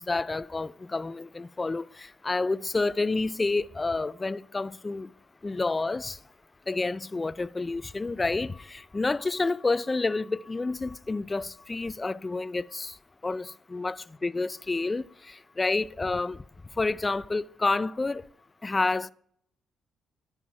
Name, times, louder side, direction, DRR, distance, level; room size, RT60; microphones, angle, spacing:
voice 1, 0.0-5.1 5.4-6.2 6.7-12.9 13.2-16.4 16.8-18.2 18.6-19.1, left 3 dB, 20° left, 0.4 m, -29 dB
12.0 x 9.1 x 4.6 m
cardioid pair, 90°, 0 cm